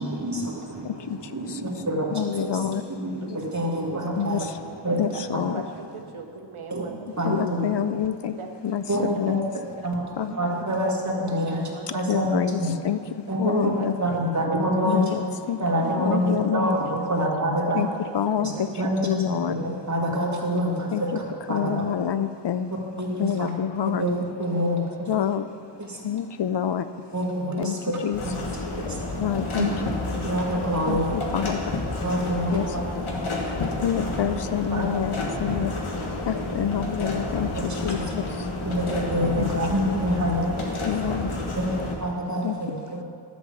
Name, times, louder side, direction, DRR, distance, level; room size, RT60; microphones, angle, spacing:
voice 1, 0.0-4.4 4.8-5.5 6.7-6.9 7.2-7.8 8.9-12.7 13.3-17.9 18.4-21.8 23.0-23.5 24.0-24.1 24.4-25.1 25.8-26.0 27.1-28.3 28.8-29.1 29.6-29.7 30.2-31.2 32.0-32.8 33.1-34.1 34.7-34.9 37.5-37.9 38.6-40.9 41.6-43.0, equal, 35° right, -3 dB, 2.0 m, -27 dB
voice 2, 0.8-1.6 2.1-2.8 4.2-4.4 5.0-5.6 7.2-8.4 8.6-9.5 10.2-10.3 11.9-12.6 12.8-13.0 13.4-13.9 14.8-15.6 16.0-16.7 17.7-17.9 18.1-18.7 19.0-19.6 20.9-21.2 21.5-22.8 23.2-24.1 25.1-25.4 26.0-26.9 27.6-27.8 28.0-28.2 29.2-29.7 30.9-31.7 32.5-32.8 33.4-38.5 39.4-39.5 40.8-41.3 42.4-42.6, left 9 dB, 60° left, 12 dB, 0.5 m, -27 dB
voice 3, 4.9-5.2 5.5-7.3 8.3-8.5 9.0-9.9 10.5-10.7 11.1-12.2 12.7-13.0 13.3-13.4 13.8-14.5 14.8-14.9 15.8-16.9 17.6-19.1 21.1-21.2, right 5 dB, 85° right, 4 dB, 0.9 m, -41 dB
sound 1, 28.1-42.0, left 2 dB, 80° left, 1.6 m, -30 dB
11.5 x 5.3 x 6.9 m, 2.3 s
wide cardioid pair, 65°, 49 cm